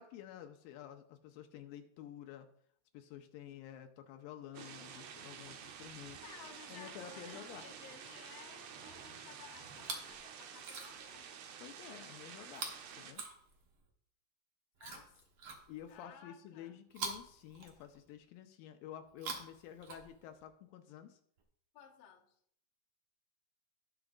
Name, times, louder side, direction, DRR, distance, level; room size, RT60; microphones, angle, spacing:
voice 1, 0.0-2.5 2.9-6.2 6.7-7.7 11.6-13.2 14.9-15.0 15.7-21.2, left 10 dB, 85° left, 7 dB, 2.4 m, -51 dB
sound 1, 4.5-13.1, right 7 dB, 85° right, 1.5 m, -50 dB
voice 2, 6.2-11.4 14.8-15.2 15.9-16.8 21.7-22.3, left 8 dB, 60° left, 0 dB, 1.9 m, -56 dB
Chewing mastication, 9.7-10.2 10.5-11.2 12.5-13.9 14.8-16.0 16.9-18.2 19.0-20.5 21.4-21.5, right 4 dB, 60° right, 1.4 m, -46 dB
18.0 x 6.1 x 2.5 m, 0.66 s
omnidirectional pair, 4.2 m